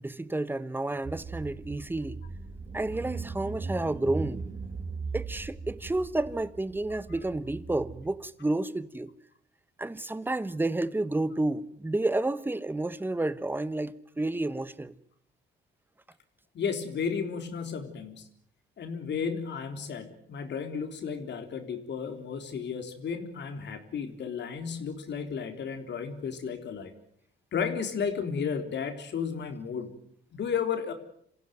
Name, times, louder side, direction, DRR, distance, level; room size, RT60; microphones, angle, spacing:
voice 1, 0.0-2.2 2.7-4.4 5.1-9.1 9.8-14.9, right 2 dB, 10° right, 1.2 m, -30 dB
Car / Engine, 1.0-8.1, right 4 dB, 40° right, 3.7 m, -39 dB
voice 2, 16.5-18.3 18.8-26.9 27.5-29.9 30.3-30.9, left 6 dB, 60° left, 3.8 m, -33 dB
27.0 x 15.5 x 9.3 m
cardioid pair, 90°, 20 cm